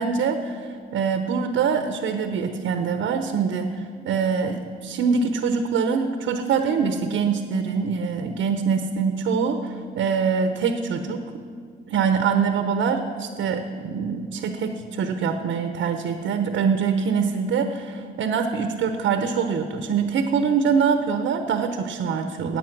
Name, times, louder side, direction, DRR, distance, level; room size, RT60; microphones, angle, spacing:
voice 1, 0.0-3.7 4.0-9.6 9.9-11.2 11.9-22.6, right 6 dB, 80° right, 7 dB, 1.0 m, -24 dB
17.5 x 8.8 x 6.0 m, 2.1 s
cardioid pair, 90°, 20 cm